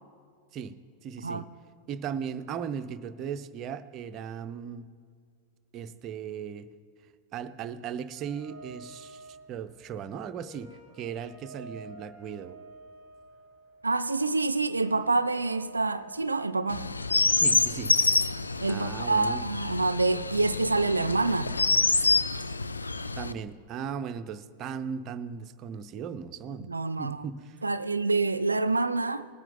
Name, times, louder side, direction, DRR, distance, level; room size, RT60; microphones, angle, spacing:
voice 1, 1.0-1.5 1.9-4.9 5.7-6.7 7.3-12.6 17.4-17.9 18.7-19.4 23.2-26.7 27.0-27.6, right 7 dB, 35° right, 0.6 m, -37 dB
sound 1, 8.1-16.6, right 2 dB, 50° left, 3.7 m, -50 dB
voice 2, 13.8-16.9 18.6-21.6 26.6-27.2 27.6-29.3, right 3 dB, 80° right, 0.4 m, -27 dB
Chirp tweet, 16.7-23.3, left 3 dB, 80° left, 0.4 m, -27 dB
19.5 x 9.0 x 3.9 m
figure-of-eight pair, 90°, 0 cm